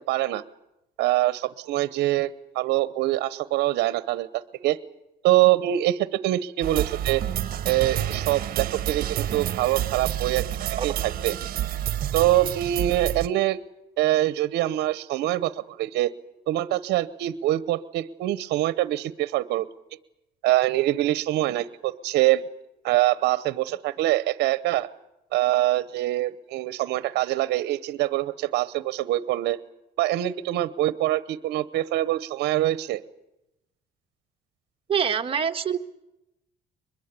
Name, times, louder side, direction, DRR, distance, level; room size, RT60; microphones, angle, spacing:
voice 1, 0.1-0.4 1.0-4.8 5.2-7.2 7.6-10.5 10.8-11.4 12.1-13.6 14.0-16.1 16.5-19.7 20.4-22.4 22.8-24.9 25.3-29.6 30.0-33.0, right 15 dB, 80° right, 16 dB, 1.0 m, -24 dB
sound 1, 6.6-13.3, right 11 dB, 60° right, 1.3 m, -29 dB
voice 2, 34.9-35.8, right 7 dB, 35° right, 4 dB, 1.7 m, -25 dB
23.5 x 21.5 x 8.4 m, 0.90 s
cardioid pair, 110°, 17 cm